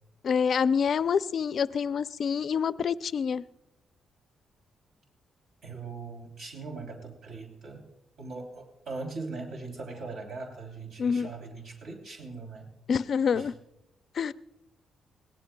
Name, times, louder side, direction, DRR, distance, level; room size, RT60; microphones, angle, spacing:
voice 1, 0.2-3.4 11.0-11.3 12.9-13.5 14.1-14.3, left 6 dB, 55° left, 14 dB, 0.4 m, -26 dB
voice 2, 5.6-7.9 8.2-12.7 13.3-13.5, right 3 dB, 70° right, 1 dB, 3.3 m, -40 dB
21.5 x 17.5 x 2.3 m, 0.86 s
cardioid pair, 110°, 0 cm